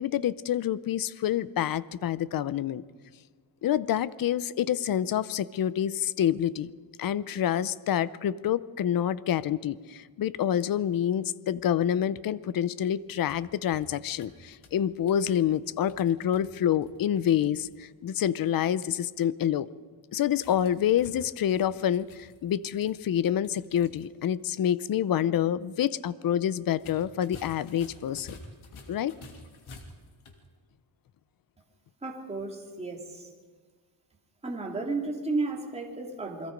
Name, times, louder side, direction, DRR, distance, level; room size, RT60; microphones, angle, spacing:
voice 1, 0.0-2.8 3.6-6.7 7.0-19.7 20.1-28.4 28.9-29.1, left 10 dB, 45° left, 17 dB, 0.6 m, -27 dB
sound 1, 13.0-17.7 20.3-24.1 24.4-24.5 26.7-30.5, left 2 dB, 85° left, 3.0 m, -51 dB
voice 2, 32.0-33.3 34.4-36.5, right 3 dB, 15° right, 0 dB, 2.6 m, -33 dB
28.5 x 22.0 x 5.2 m, 1.5 s
wide cardioid pair, 170°, 48 cm